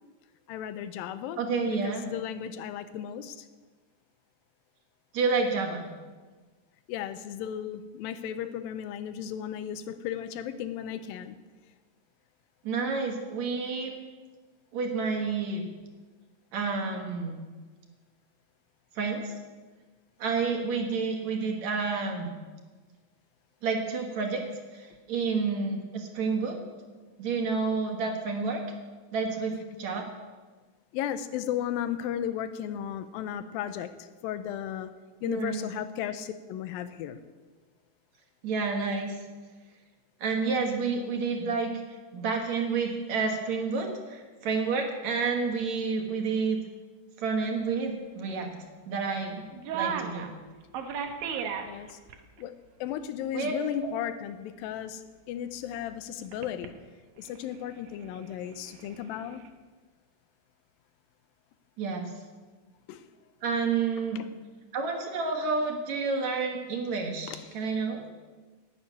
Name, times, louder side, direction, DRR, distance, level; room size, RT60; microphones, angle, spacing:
voice 1, 0.5-3.5 6.9-11.4 30.9-34.9 35.2-37.2 51.6-52.0 52.4-56.8 57.2-59.4 62.9-63.1 64.2-64.3 67.3-67.4, left 10 dB, 85° left, 11 dB, 2.5 m, -35 dB
voice 2, 1.4-2.1 5.1-5.9 12.6-13.9 14.7-15.6 16.5-17.4 19.0-19.3 20.2-22.3 23.6-24.4 24.7-26.6 27.2-28.6 29.1-29.5 29.8-30.1 35.3-35.6 38.4-39.2 40.2-41.7 42.1-46.6 47.2-48.5 48.9-49.5 49.7-50.3 53.3-53.9 61.8-62.1 63.4-64.2 64.7-68.0, right 4 dB, 60° right, 2 dB, 2.4 m, -29 dB
sound 1, 49.3-49.4 49.5-50.3 50.7-52.2 52.4-52.5 52.9-53.0 56.3-56.7 57.2-59.5, right 7 dB, 90° right, 2.8 m, -35 dB
11.5 x 8.7 x 9.5 m, 1.4 s
omnidirectional pair, 4.0 m